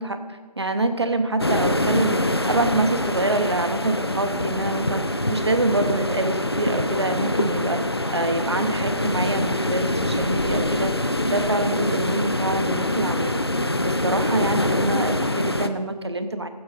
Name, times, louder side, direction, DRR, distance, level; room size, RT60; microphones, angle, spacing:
voice 1, 0.0-2.2 2.5-5.0 5.3-7.8 8.1-11.0 11.3-13.4 13.9-16.5, right 2 dB, 40° right, 8 dB, 0.9 m, -25 dB
sound 1, 1.4-15.7, left 1 dB, 40° left, 0.5 m, -24 dB
15.0 x 7.7 x 4.2 m, 1.3 s
figure-of-eight pair, 175°, 21 cm